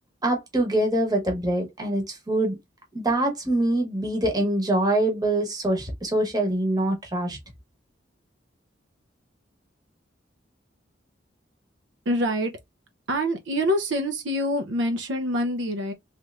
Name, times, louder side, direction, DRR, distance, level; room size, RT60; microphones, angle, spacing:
voice 1, 0.2-2.6 2.9-7.4, right 1 dB, 20° right, 1.0 m, -24 dB
voice 2, 12.1-12.5 13.1-15.9, equal, 75° right, 0.6 m, -25 dB
3.3 x 3.0 x 2.4 m
head